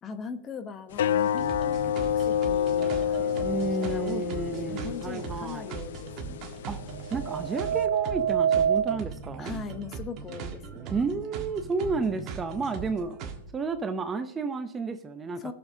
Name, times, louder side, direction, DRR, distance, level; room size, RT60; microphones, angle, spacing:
voice 1, 0.0-3.2 3.5-6.4 9.4-11.1 15.4-15.5, left 6 dB, 25° left, 9 dB, 0.9 m, -40 dB
sound 1, 0.9-7.9, left 9 dB, 70° left, 0.4 m, -29 dB
sound 2, 1.2-13.4, right 6 dB, 35° right, 1.5 m, -39 dB
sound 3, 2.8-3.5 6.8-9.0, right 8 dB, 80° right, 0.3 m, -27 dB
voice 2, 3.2-5.7 6.7-6.8 7.1-9.6 10.9-13.2 13.5-15.5, right 4 dB, 15° right, 9 dB, 0.6 m, -31 dB
19.0 x 7.0 x 2.7 m, 0.83 s
hypercardioid pair, 135°, 0 cm